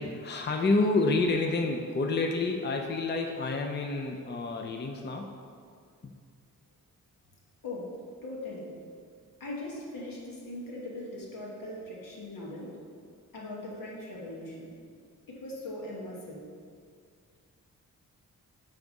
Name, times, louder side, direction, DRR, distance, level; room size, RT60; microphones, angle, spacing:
voice 1, 0.0-5.3 6.0-6.1, left 3 dB, 30° left, 3 dB, 0.5 m, -28 dB
voice 2, 7.6-8.8 9.4-12.8 13.3-14.7 15.3-16.5, left 1 dB, 75° left, -3 dB, 1.4 m, -40 dB
6.5 x 3.6 x 5.3 m, 2.2 s
cardioid pair, 65°, 34 cm